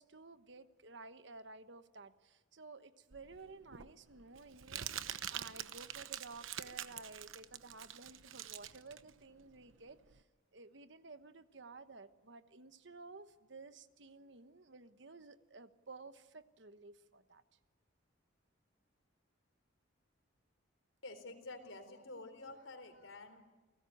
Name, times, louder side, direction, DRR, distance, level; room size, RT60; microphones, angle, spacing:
voice 1, 0.0-10.2 10.5-17.4, right 3 dB, 65° right, 11 dB, 1.2 m, -54 dB
Crumpling crinkling, 3.1-10.2, right 10 dB, 90° right, 1.0 m, -46 dB
voice 2, 21.0-23.4, left 2 dB, 90° left, 7 dB, 4.1 m, -49 dB
29.5 x 19.0 x 8.6 m, 1.2 s
head